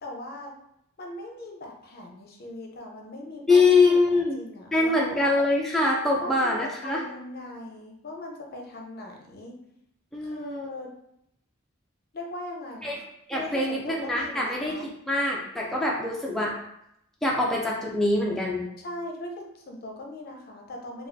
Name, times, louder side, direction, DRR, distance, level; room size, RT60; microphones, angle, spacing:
voice 1, 0.0-0.5 1.0-3.7 4.1-5.1 6.2-9.6 10.2-10.9 12.1-12.9 13.3-14.9 18.8-21.1, left 1 dB, 50° left, 1 dB, 0.6 m, -39 dB
voice 2, 3.5-4.4 4.7-7.0 10.1-10.7 12.8-13.0 13.3-14.7 15.1-16.5 17.2-18.7, left 3 dB, ahead, -4 dB, 0.4 m, -23 dB
4.2 x 2.3 x 2.6 m, 0.78 s
head